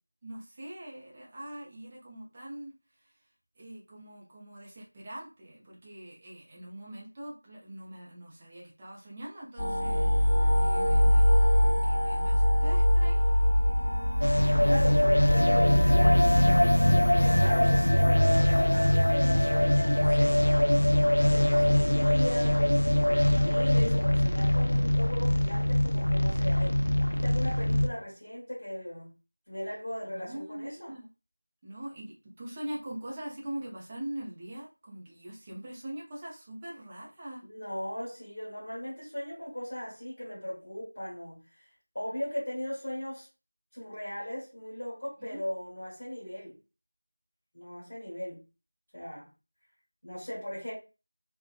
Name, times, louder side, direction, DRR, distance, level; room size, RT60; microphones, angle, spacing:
voice 1, 0.2-3.1 3.6-13.3 14.7-15.1 30.1-31.1 31.6-37.4 45.3-45.4, right 1 dB, 10° right, 0.4 m, -43 dB
sound 1, 9.6-20.1, equal, 45° left, 0.9 m, -25 dB
sound 2, 14.2-27.9, left 1 dB, 75° left, 0.4 m, -23 dB
voice 2, 14.3-16.3 17.0-20.5 20.9-22.7 23.0-26.8 27.0-29.1 29.5-30.9 37.4-43.3 43.7-46.6 47.5-48.4 48.9-49.3 50.0-50.7, equal, 30° left, 1.2 m, -38 dB
2.6 x 2.0 x 2.3 m
figure-of-eight pair, 175°, 0 cm